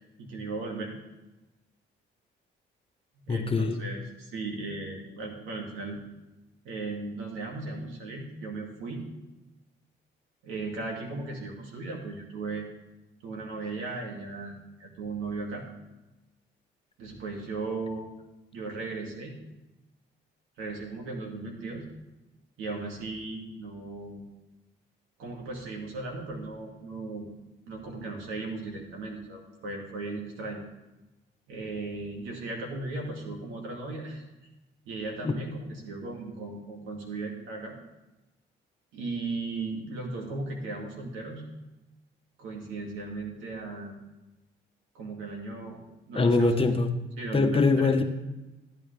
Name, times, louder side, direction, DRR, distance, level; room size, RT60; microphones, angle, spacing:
voice 1, 0.2-0.9 3.3-6.0 6.6-9.0 10.4-12.7 13.2-15.7 17.0-18.1 18.5-19.3 20.6-21.8 22.6-24.2 25.2-27.3 27.7-30.6 31.5-34.2 34.9-37.8 38.9-41.5 42.4-43.9 44.9-45.8 46.1-46.5 47.2-47.9, right 3 dB, 90° right, 0 dB, 2.5 m, -36 dB
voice 2, 3.3-3.8 35.2-35.3 46.1-46.9 47.3-48.0, left 3 dB, 30° left, 5 dB, 1.2 m, -23 dB
13.5 x 9.3 x 3.5 m, 1.0 s
cardioid pair, 90°, 20 cm